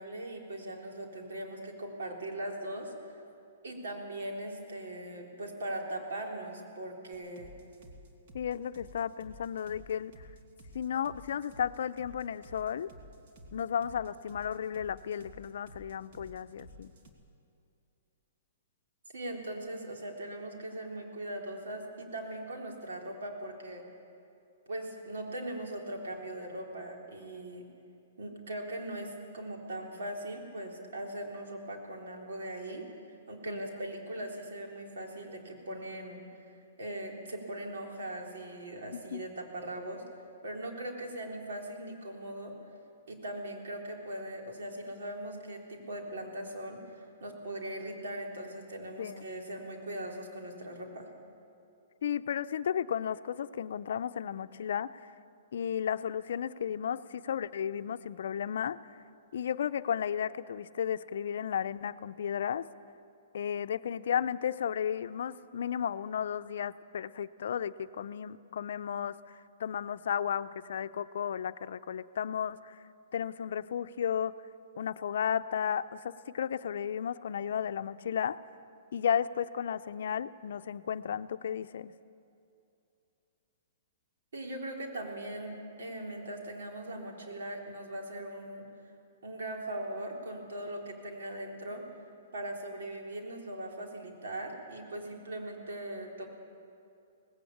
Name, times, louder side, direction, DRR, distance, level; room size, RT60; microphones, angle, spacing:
voice 1, 0.0-2.9 3.6-7.5 19.1-23.8 24.7-27.7 28.2-32.9 33.3-36.3 36.8-40.0 40.4-42.5 43.1-51.1 84.3-88.7 89.2-91.9 92.3-96.3, right 1 dB, 85° right, 1 dB, 3.9 m, -40 dB
sound 1, 7.1-17.1, equal, 50° right, 2.5 m, -52 dB
voice 2, 8.3-10.1 10.7-12.9 13.5-16.9 33.5-33.7 38.9-39.2 49.0-49.3 52.0-55.0 55.5-58.8 59.3-62.6 63.3-72.8 73.1-74.3 74.8-78.4 78.9-81.9, left 8 dB, 70° left, 12 dB, 0.6 m, -34 dB
18.5 x 16.5 x 8.7 m, 2.7 s
hypercardioid pair, 160°, 0 cm